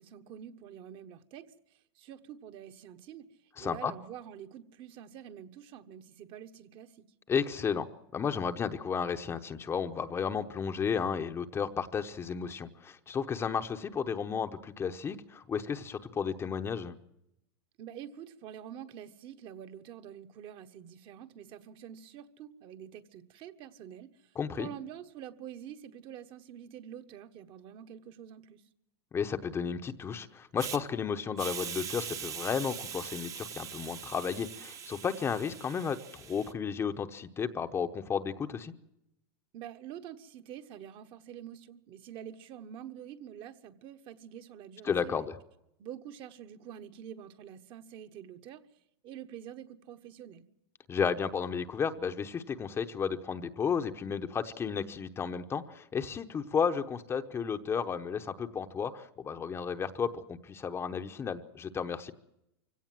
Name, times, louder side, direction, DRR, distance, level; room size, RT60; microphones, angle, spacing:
voice 1, 0.0-3.3 3.6-7.1 17.8-28.6 39.5-45.3 45.8-48.6 49.0-50.5, right 9 dB, 40° right, 1.3 m, -47 dB
voice 2, 3.6-3.9 7.3-7.9 8.1-16.9 24.4-24.7 29.1-38.7 44.8-45.3 50.9-62.1, left 6 dB, 20° left, 0.9 m, -33 dB
Hiss, 30.6-30.8 31.4-36.5, right 8 dB, 25° right, 0.9 m, -41 dB
24.0 x 17.0 x 7.5 m
supercardioid pair, 140°, 14 cm